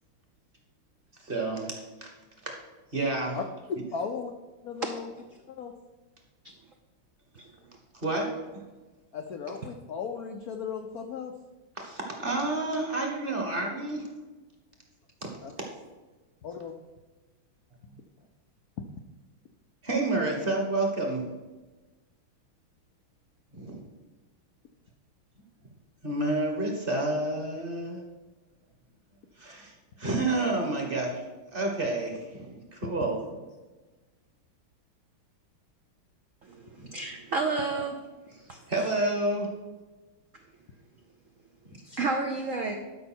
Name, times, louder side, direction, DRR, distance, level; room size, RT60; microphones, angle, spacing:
voice 1, 1.3-1.7 2.4-2.6 2.9-3.4 8.0-8.3 11.8-14.0 19.8-21.2 23.5-23.8 26.0-28.0 29.4-29.7 30.0-31.2 31.5-33.2 38.7-39.5, right 2 dB, 30° right, 1 dB, 1.3 m, -29 dB
voice 2, 3.9-4.3 4.6-5.1 5.5-5.7 9.1-11.3 15.4-15.5 16.4-16.7, left 6 dB, 75° left, 5 dB, 0.8 m, -36 dB
voice 3, 36.4-37.9 38.5-38.6 41.8-42.7, right 3 dB, 60° right, 3 dB, 0.8 m, -31 dB
12.0 x 5.4 x 4.4 m, 1.2 s
omnidirectional pair, 2.3 m